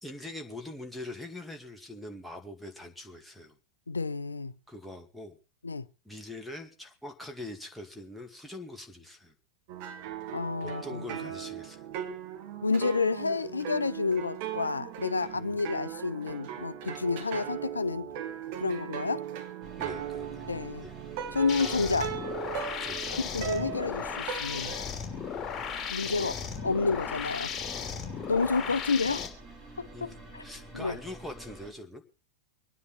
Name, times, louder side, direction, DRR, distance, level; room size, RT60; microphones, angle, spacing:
voice 1, 0.0-3.6 4.7-5.4 6.0-9.3 10.6-11.8 15.3-15.6 19.8-20.5 20.8-20.9 22.8-23.2 26.2-26.3 29.9-30.1 30.4-32.0, left 1 dB, ahead, 2.3 m, -43 dB
voice 2, 3.9-4.5 5.6-5.8 10.3-11.0 12.6-18.1 18.6-19.2 20.5-20.9 21.3-22.1 23.1-24.7 25.9-26.3 26.6-27.6 28.3-29.2 29.8-30.4 30.7-31.0, left 4 dB, 80° left, 0.7 m, -30 dB
sound 1, 9.7-24.9, right 10 dB, 45° right, 1.7 m, -38 dB
sound 2, 19.6-31.7, right 2 dB, 25° right, 3.8 m, -48 dB
sound 3, 21.5-29.3, left 7 dB, 20° left, 3.0 m, -36 dB
25.5 x 9.7 x 4.1 m
figure-of-eight pair, 90°, 0 cm